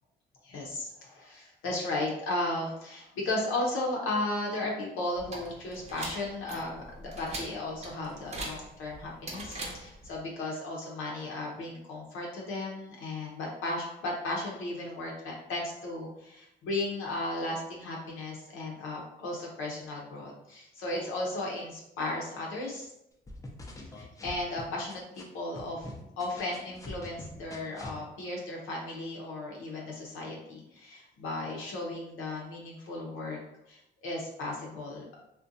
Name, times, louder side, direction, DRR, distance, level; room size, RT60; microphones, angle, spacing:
voice 1, 0.4-22.9 24.0-25.9 26.2-33.4 33.7-35.0, left 2 dB, 85° left, -2 dB, 0.6 m, -35 dB
sound 1, 5.2-10.2, right 2 dB, 35° right, 0.7 m, -42 dB
sound 2, 23.3-25.2 25.5-28.0, left 1 dB, 15° left, 0.4 m, -43 dB
2.5 x 2.2 x 2.6 m, 0.83 s
cardioid pair, 90°, 20 cm